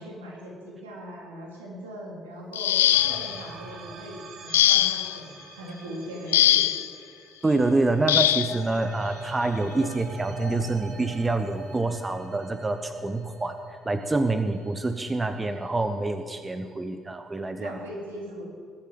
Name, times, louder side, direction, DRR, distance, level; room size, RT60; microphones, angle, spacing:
voice 1, 0.0-6.9 17.6-18.4, equal, 75° right, -2 dB, 3.5 m, -40 dB
sound 1, 2.5-3.4 4.5-5.2 6.3-6.9 8.1-8.6 9.8-9.9 10.4-10.6, left 13 dB, 75° left, 0.3 m, -21 dB
sound 2, 2.9-15.3, right 2 dB, 55° right, 2.5 m, -42 dB
voice 2, 7.4-13.5 13.8-17.8, right 2 dB, 20° right, 8 dB, 1.0 m, -26 dB
20.5 x 8.4 x 7.7 m, 2.2 s
figure-of-eight pair, 45°, 0 cm